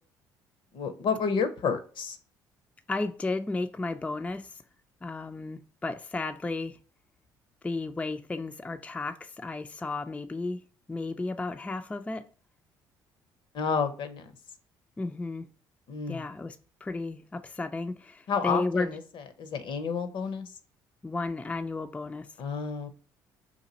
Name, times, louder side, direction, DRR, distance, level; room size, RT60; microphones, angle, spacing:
voice 1, 0.7-2.2 13.5-14.3 15.9-16.2 18.3-19.0 19.4-20.5 22.4-22.9, left 6 dB, 60° left, 0.6 m, -30 dB
voice 2, 2.9-4.6 5.0-6.8 7.6-10.6 10.9-12.3 15.0-15.5 16.1-18.9 21.0-22.3, left 3 dB, 15° left, 0.3 m, -33 dB
2.9 x 2.4 x 3.9 m
hypercardioid pair, 60°, 10 cm